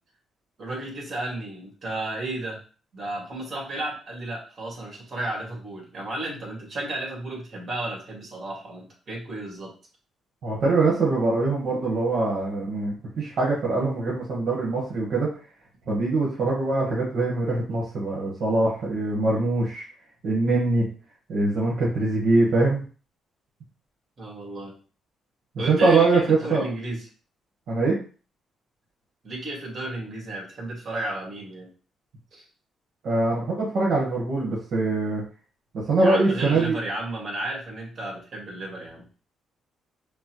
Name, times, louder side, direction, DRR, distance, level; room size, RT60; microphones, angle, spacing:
voice 1, 0.6-2.6 2.9-9.7 24.2-24.8 25.6-27.1 29.2-31.7 32.3-32.4 36.0-39.1, right 2 dB, 45° right, -1 dB, 1.9 m, -33 dB
voice 2, 10.4-15.3 15.9-19.8 20.2-20.8 21.3-22.8 25.7-26.6 27.7-28.0 33.0-35.2 35.9-36.8, right 3 dB, 65° right, -5 dB, 1.4 m, -23 dB
5.2 x 2.2 x 3.0 m, 0.38 s
cardioid pair, 90°, 0 cm